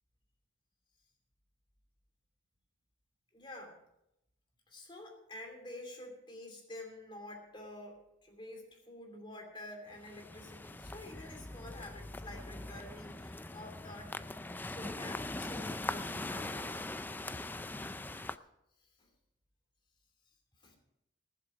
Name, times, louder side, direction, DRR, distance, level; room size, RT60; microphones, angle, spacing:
voice 1, 3.3-3.8 4.7-14.2 14.6-16.8 18.8-19.1 20.6-20.8, left 1 dB, 25° left, 2 dB, 2.9 m, -49 dB
sound 1, 9.9-18.4, left 2 dB, 10° left, 0.3 m, -41 dB
19.5 x 7.6 x 4.9 m, 0.85 s
head